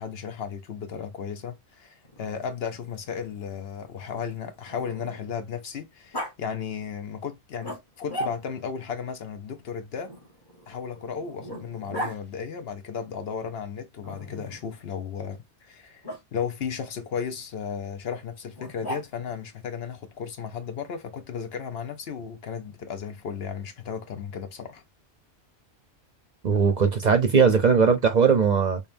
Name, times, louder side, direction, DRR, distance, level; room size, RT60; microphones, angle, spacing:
voice 1, 0.0-10.1 10.7-16.1 16.3-24.8, left 7 dB, 65° left, 0.9 m, -34 dB
Growling, 2.0-5.4 6.1-6.3 7.6-8.7 10.1-12.2 14.0-14.7 16.0-16.2 18.6-19.4, equal, 20° left, 1.0 m, -38 dB
voice 2, 26.4-28.8, right 6 dB, 50° right, 0.6 m, -19 dB
5.0 x 2.3 x 2.6 m
omnidirectional pair, 1.2 m